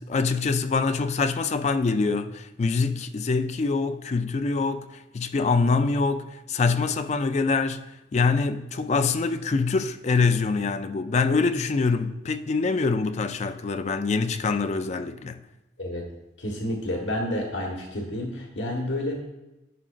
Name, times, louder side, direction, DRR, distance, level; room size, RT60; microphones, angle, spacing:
voice 1, 0.0-7.9 8.1-15.4, left 4 dB, 35° left, 0.4 m, -25 dB
voice 2, 16.4-19.2, left 1 dB, 90° left, 1.4 m, -30 dB
11.0 x 6.1 x 2.5 m
head